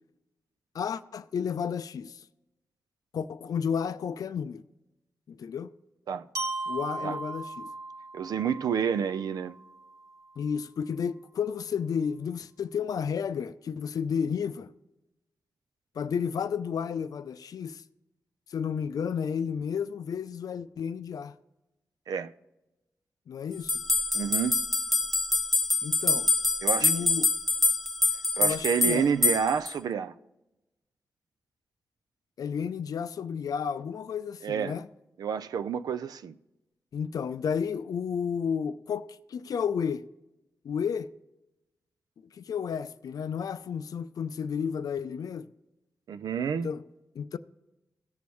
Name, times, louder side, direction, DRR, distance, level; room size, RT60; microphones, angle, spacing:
voice 1, 0.7-2.2 3.1-4.6 5.3-5.7 6.7-7.7 10.4-14.7 16.0-17.8 18.5-21.3 23.3-23.8 25.8-26.3 26.8-27.3 28.4-29.1 32.4-34.9 36.9-40.1 40.6-41.1 42.3-45.5 46.6-46.8 47.2-47.4, left 7 dB, 70° left, 0.4 m, -32 dB
Glockenspiel, 6.3-10.3, right 2 dB, 65° right, 1.0 m, -38 dB
voice 2, 8.1-9.6 22.1-22.3 24.1-24.6 26.6-26.9 28.4-30.1 34.4-34.8 35.2-36.4 46.1-46.7, right 7 dB, 85° right, 0.4 m, -29 dB
sound 1, 23.7-29.7, left 3 dB, ahead, 0.5 m, -25 dB
17.0 x 6.9 x 3.1 m
cardioid pair, 70°, 6 cm